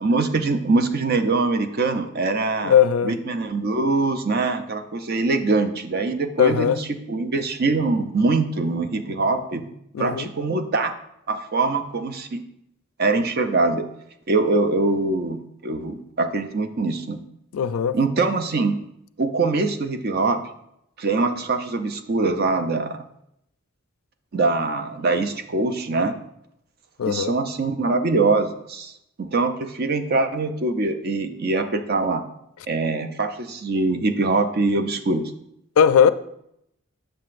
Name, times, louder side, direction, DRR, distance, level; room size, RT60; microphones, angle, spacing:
voice 1, 0.0-2.7 3.0-9.6 10.0-10.9 11.3-12.4 13.0-13.9 14.3-17.2 17.9-18.8 19.2-20.4 21.0-23.0 24.3-26.1 27.1-28.9 29.2-32.2 32.7-35.3, right 3 dB, 45° right, 0.5 m, -23 dB
voice 2, 2.6-3.1 6.4-6.8 9.9-10.3 17.5-18.0 27.0-27.3 35.8-36.1, left 8 dB, 75° left, 0.3 m, -18 dB
7.7 x 6.6 x 2.5 m
head